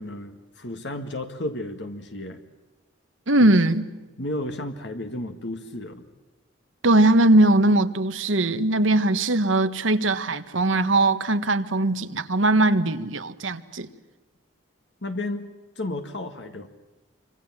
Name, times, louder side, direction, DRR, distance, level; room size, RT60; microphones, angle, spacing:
voice 1, 0.0-2.4 4.2-6.0 15.0-16.7, left 1 dB, 60° left, 1.9 m, -33 dB
voice 2, 3.3-3.9 6.8-13.9, right 2 dB, 85° right, 1.6 m, -20 dB
28.5 x 25.5 x 7.5 m
head